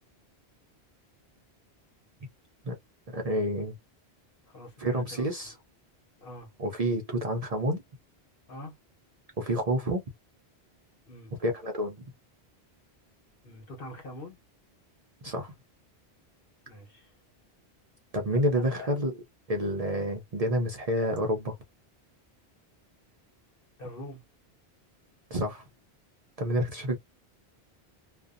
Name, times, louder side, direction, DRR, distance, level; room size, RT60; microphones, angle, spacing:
voice 1, 3.1-3.8 4.8-5.5 6.6-7.8 9.4-10.0 11.4-12.1 15.2-15.5 18.1-19.1 19.5-21.6 25.3-25.6 26.4-27.0, equal, 45° right, 0.6 m, -28 dB
voice 2, 4.5-5.5 6.2-6.5 8.5-8.8 11.1-11.3 13.4-14.4 16.7-17.1 18.3-18.9 23.8-24.2, left 1 dB, 60° left, 1.2 m, -44 dB
2.5 x 2.2 x 2.4 m
omnidirectional pair, 1.1 m